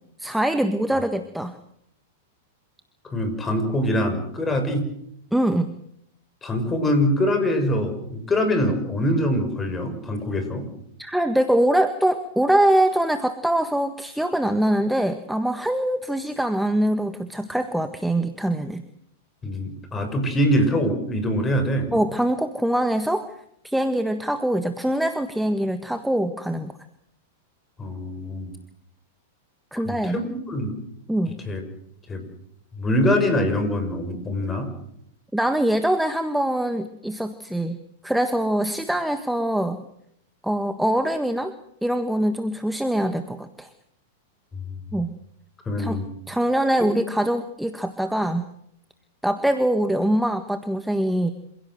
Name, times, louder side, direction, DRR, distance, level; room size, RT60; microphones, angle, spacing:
voice 1, 0.2-1.6 5.3-5.7 11.0-18.8 21.9-23.3 23.6-26.7 29.7-30.2 31.1-31.3 35.3-37.8 38.0-39.8 40.4-41.5 41.8-43.7 44.9-45.1 45.8-46.0 46.3-48.5 49.2-51.3, right 1 dB, ahead, 9 dB, 1.6 m, -23 dB
voice 2, 3.0-4.9 6.4-10.7 19.4-21.9 27.8-28.5 29.7-30.8 31.4-31.6 32.1-32.3 32.7-34.7 44.5-44.6 45.6-46.0, left 1 dB, 20° left, 7 dB, 6.5 m, -24 dB
27.5 x 16.5 x 7.9 m, 0.74 s
hypercardioid pair, 105°, 0 cm